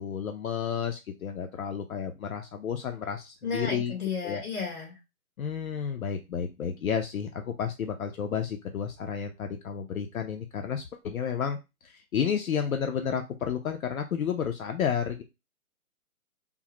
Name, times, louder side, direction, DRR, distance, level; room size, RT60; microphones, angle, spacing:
voice 1, 0.0-3.9 4.2-4.4 5.4-11.6 11.8-15.2, left 7 dB, 70° left, 4 dB, 0.6 m, -31 dB
voice 2, 3.4-5.0, left 5 dB, 90° left, -1 dB, 1.8 m, -32 dB
3.6 x 2.0 x 2.9 m, 0.25 s
hypercardioid pair, 150°, 43 cm